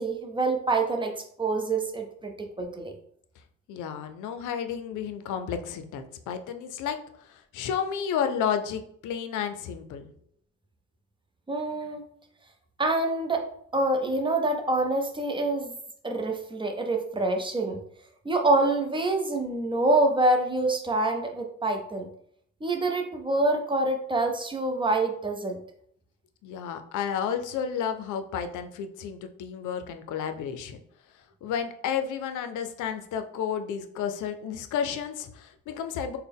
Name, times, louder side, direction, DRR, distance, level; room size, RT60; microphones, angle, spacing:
voice 1, 0.0-2.9 11.5-12.0 12.8-15.7 16.0-17.8 18.2-22.1 22.6-25.6, right 2 dB, 15° right, 3 dB, 0.6 m, -26 dB
voice 2, 3.7-7.0 7.3-10.1 26.4-30.8 31.4-36.2, left 8 dB, 85° left, 8 dB, 0.5 m, -31 dB
4.0 x 2.2 x 3.5 m, 0.66 s
cardioid pair, 90°, 30 cm